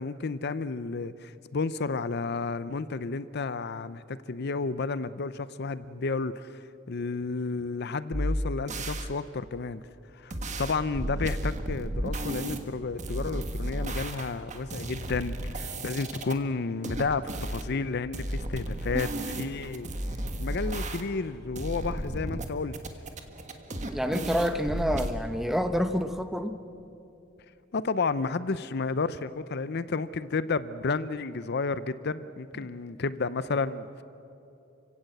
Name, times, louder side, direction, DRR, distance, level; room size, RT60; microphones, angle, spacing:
voice 1, 0.0-9.9 10.1-19.9 20.4-22.8 27.7-34.0, left 4 dB, 55° left, 15 dB, 0.6 m, -32 dB
sound 1, 8.1-9.1 10.3-12.6 13.0-16.3 16.8-17.7 18.1-21.3 21.6-22.5 22.7-25.1, right 1 dB, 35° right, 1.5 m, -33 dB
voice 2, 23.9-26.6, equal, ahead, 8 dB, 0.9 m, -28 dB
29.5 x 16.5 x 7.9 m, 2.8 s
head